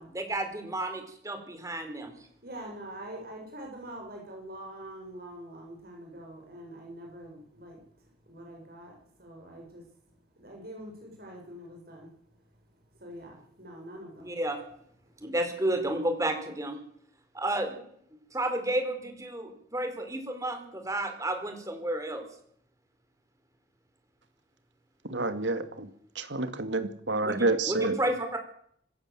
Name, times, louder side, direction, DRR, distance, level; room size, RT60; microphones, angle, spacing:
voice 1, 0.1-2.1 14.2-14.6 15.2-16.8 17.3-17.8 18.3-22.3 27.2-28.4, right 1 dB, 20° right, 6 dB, 4.5 m, -31 dB
voice 2, 2.4-14.4, right 1 dB, 55° right, 1 dB, 7.5 m, -45 dB
voice 3, 25.0-25.9 26.2-28.0, right 2 dB, 80° right, 10 dB, 2.3 m, -29 dB
25.0 x 16.0 x 7.8 m, 0.67 s
head